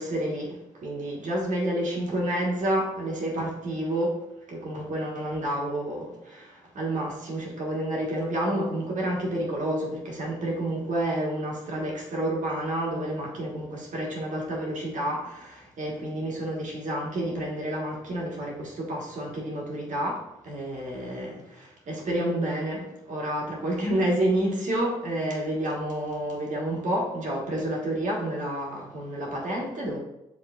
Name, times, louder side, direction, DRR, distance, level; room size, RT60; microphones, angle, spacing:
voice 1, 0.0-4.2 4.5-30.0, right 1 dB, 60° right, -2 dB, 1.6 m, -29 dB
5.7 x 3.6 x 2.5 m, 0.91 s
supercardioid pair, 60°, 14 cm